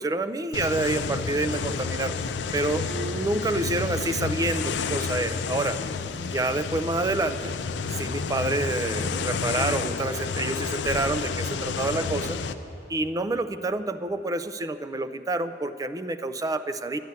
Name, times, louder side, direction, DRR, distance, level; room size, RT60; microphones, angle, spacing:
voice 1, 0.0-2.1 2.5-5.8 6.3-7.5 7.9-12.4 12.9-17.0, right 2 dB, 20° right, 11 dB, 0.4 m, -28 dB
sound 1, 0.5-12.5, left 5 dB, 90° left, 0.5 m, -30 dB
11.0 x 9.4 x 8.0 m, 3.0 s
head